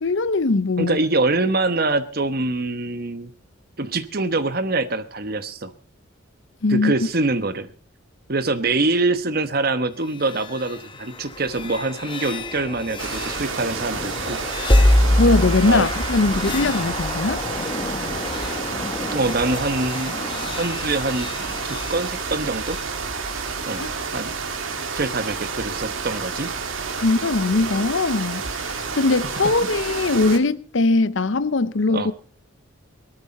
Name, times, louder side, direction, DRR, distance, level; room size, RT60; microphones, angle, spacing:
voice 1, 0.0-1.0 6.6-6.9 15.2-17.4 23.7-23.9 27.0-32.1, left 3 dB, 65° left, 0.7 m, -21 dB
voice 2, 0.8-3.3 3.8-5.7 6.7-7.7 8.3-14.4 15.6-15.9 19.1-20.1 20.6-21.3 21.6-22.8 23.7-23.9 24.1-24.3 24.9-26.5 31.9-32.1, right 2 dB, 45° right, 1.1 m, -24 dB
sound 1, 10.0-22.9, left 1 dB, 25° left, 0.9 m, -26 dB
sound 2, 13.0-30.4, right 5 dB, 80° right, 2.0 m, -30 dB
19.0 x 13.0 x 4.3 m
head